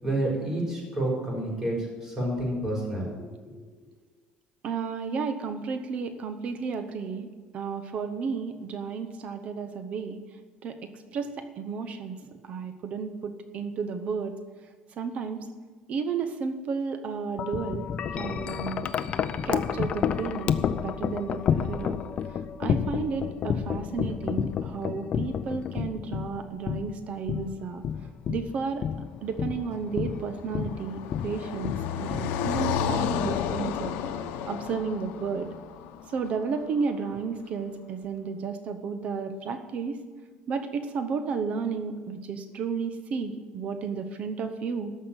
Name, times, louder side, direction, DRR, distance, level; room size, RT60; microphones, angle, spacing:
voice 1, 0.0-3.3, right 1 dB, 15° right, -4 dB, 4.7 m, -29 dB
voice 2, 4.6-7.3 7.5-10.2 10.6-14.4 15.0-15.5 15.9-17.9 18.1-18.9 19.4-20.6 20.8-22.0 22.3-27.8 28.3-28.8 29.2-33.9 34.5-35.5 36.1-40.0 40.5-44.9, right 5 dB, 45° right, 9 dB, 0.8 m, -32 dB
Wind chime, 17.4-33.6, left 8 dB, 40° left, 0.5 m, -31 dB
Car passing by, 29.6-36.8, left 7 dB, 90° left, 0.9 m, -32 dB
13.5 x 5.7 x 8.9 m, 1.4 s
cardioid pair, 150°, 3 cm